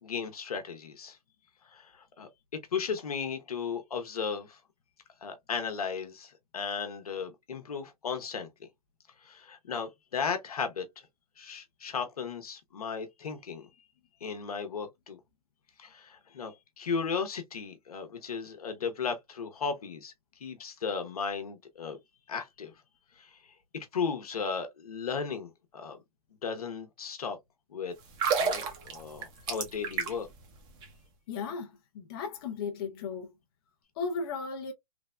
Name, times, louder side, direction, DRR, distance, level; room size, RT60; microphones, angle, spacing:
voice 1, 0.0-1.2 1.7-4.6 5.2-8.7 9.2-11.1 11.4-13.7 14.2-15.2 15.8-20.1 20.4-22.0 22.3-22.7 23.2-26.0 26.4-27.4 27.7-27.9 28.4-30.3, left 6 dB, 75° left, 0.9 m, -35 dB
sound 1, 28.0-30.4 30.7-30.9, right 6 dB, 25° right, 0.8 m, -30 dB
voice 2, 31.3-33.3 34.0-34.7, left 5 dB, 40° left, 0.6 m, -35 dB
3.3 x 2.1 x 2.3 m
hypercardioid pair, 135°, 19 cm